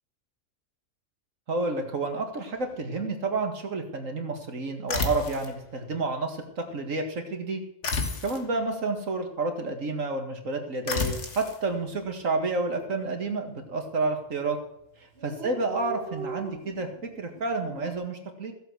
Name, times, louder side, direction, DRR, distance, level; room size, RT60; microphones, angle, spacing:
voice 1, 1.5-7.6 8.2-14.6 15.2-18.5, right 3 dB, 80° right, 4 dB, 2.3 m, -30 dB
sound 1, 4.9-5.5 7.8-8.5 10.9-11.6, left 4 dB, 65° left, 1.9 m, -30 dB
Dog, 11.7-12.0 12.3-12.4 12.6-13.3 13.9-14.2 14.5-14.6 14.7-14.8 15.0-17.9, right 4 dB, 50° right, 1.6 m, -41 dB
15.0 x 7.8 x 6.3 m, 0.76 s
omnidirectional pair, 1.3 m